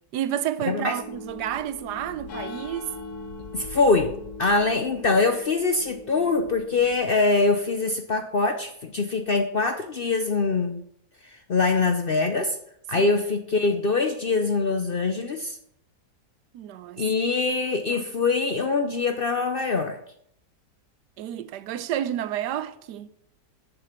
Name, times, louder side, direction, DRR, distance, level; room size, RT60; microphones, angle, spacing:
voice 1, 0.1-2.9 13.0-13.1 16.5-17.0 17.9-18.0 21.2-23.1, right 11 dB, 90° right, 1.2 m, -30 dB
sound 1, 0.7-7.0, left 3 dB, 70° left, 1.4 m, -40 dB
voice 2, 3.5-4.1 4.4-10.8 11.5-12.6 12.9-15.6 17.0-20.0, left 3 dB, 55° left, 0.6 m, -23 dB
7.0 x 6.2 x 7.4 m
omnidirectional pair, 1.7 m